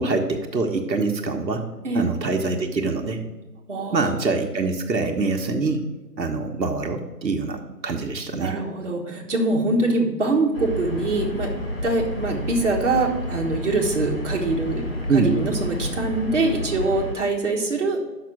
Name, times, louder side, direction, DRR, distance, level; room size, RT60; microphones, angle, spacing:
voice 1, 0.0-1.7 1.9-3.2 3.9-5.8 6.2-8.6 15.1-15.3, right 3 dB, 90° right, 4 dB, 1.1 m, -24 dB
voice 2, 3.7-4.1 8.3-11.5 11.8-14.8 15.1-18.0, right 2 dB, 45° right, 0 dB, 1.3 m, -24 dB
sound 1, 10.5-17.1, left 1 dB, 35° left, 0.9 m, -30 dB
6.1 x 5.9 x 5.9 m, 1.2 s
figure-of-eight pair, 165°, 50 cm